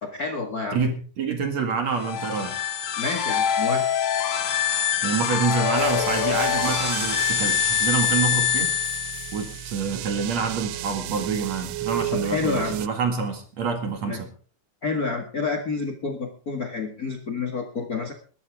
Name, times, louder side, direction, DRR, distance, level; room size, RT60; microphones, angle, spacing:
voice 1, 0.0-0.8 3.0-3.9 12.1-12.7 14.0-14.2 14.8-18.1, left 4 dB, 45° left, 4 dB, 1.2 m, -29 dB
voice 2, 0.7-2.6 5.0-8.7 9.3-14.3, right 5 dB, 50° right, 5 dB, 2.8 m, -27 dB
sound 1, 1.9-9.6, left 9 dB, 60° left, 2.0 m, -24 dB
sound 2, 5.8-12.9, right 13 dB, 85° right, 3.0 m, -33 dB
21.0 x 13.5 x 3.6 m, 0.41 s
omnidirectional pair, 4.8 m